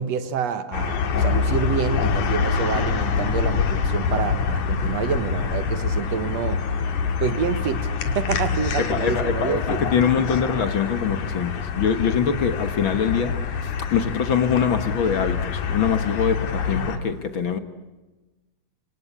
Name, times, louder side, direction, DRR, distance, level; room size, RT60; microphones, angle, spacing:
voice 1, 0.0-6.7 7.2-9.8, right 7 dB, 65° right, 11 dB, 2.3 m, -27 dB
sound 1, 0.7-17.0, left 5 dB, 85° left, 3.4 m, -25 dB
voice 2, 8.8-9.6 9.9-17.6, left 7 dB, 50° left, 9 dB, 1.8 m, -23 dB
26.5 x 25.5 x 8.6 m, 1.1 s
omnidirectional pair, 3.4 m